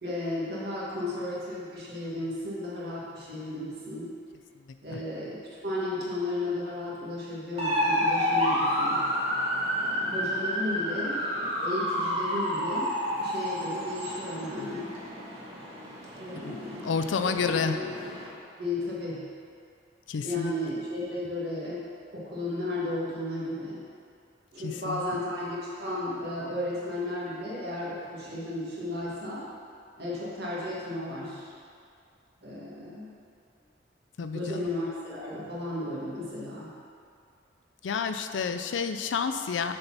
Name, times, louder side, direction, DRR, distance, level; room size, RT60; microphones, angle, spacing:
voice 1, 0.0-4.1 4.8-9.0 9.8-14.9 16.2-18.1 18.6-19.2 20.2-21.8 22.1-23.8 24.5-29.4 30.0-31.4 32.4-33.1 34.3-36.7, left 1 dB, 55° right, -7 dB, 1.6 m, -34 dB
sound 1, 7.6-18.3, equal, 30° right, 1.4 m, -30 dB
voice 2, 16.4-17.8 20.1-20.5 24.6-25.0 34.2-34.7 37.8-39.7, left 5 dB, 80° left, 8 dB, 0.4 m, -30 dB
6.7 x 4.1 x 5.9 m, 2.3 s
head